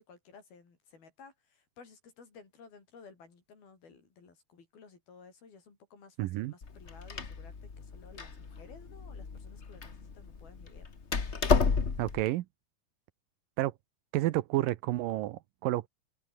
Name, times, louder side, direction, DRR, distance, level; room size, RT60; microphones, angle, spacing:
voice 1, 0.0-10.9, left 5 dB, 80° left, 7.7 m, -55 dB
voice 2, 6.2-6.5 12.0-12.5 13.6-13.7 14.1-15.9, right 16 dB, 75° right, 2.3 m, -30 dB
Door, 6.6-12.2, left 5 dB, 65° left, 0.6 m, -32 dB
omnidirectional pair, 4.2 m